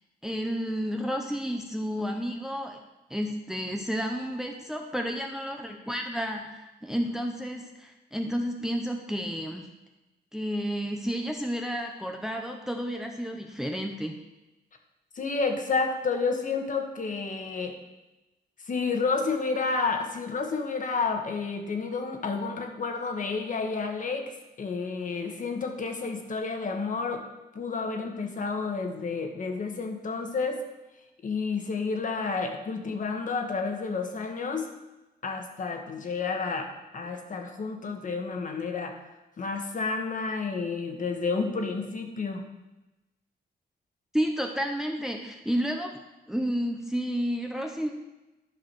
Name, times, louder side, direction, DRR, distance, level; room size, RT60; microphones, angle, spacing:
voice 1, 0.2-2.8 3.1-9.7 10.3-14.2 44.1-46.0 46.3-47.9, equal, 5° right, 3 dB, 0.7 m, -31 dB
voice 2, 15.1-17.8 18.7-24.3 24.6-27.2 27.5-30.6 31.2-34.7 35.2-39.0 39.4-42.4, left 4 dB, 50° left, 4 dB, 1.3 m, -30 dB
11.0 x 4.9 x 6.0 m, 1.0 s
wide cardioid pair, 130°, 17 cm